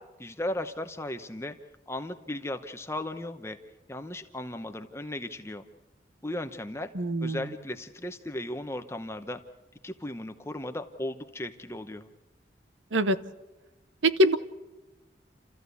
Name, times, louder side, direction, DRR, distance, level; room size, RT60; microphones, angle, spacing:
voice 1, 0.2-1.6 1.9-3.6 3.9-5.6 6.2-6.9 7.2-9.4 9.8-12.1, left 1 dB, 15° left, 7 dB, 0.9 m, -36 dB
voice 2, 6.9-7.4 12.9-13.2 14.0-14.4, equal, 90° right, 12 dB, 1.0 m, -23 dB
29.0 x 14.5 x 8.2 m, 1.1 s
head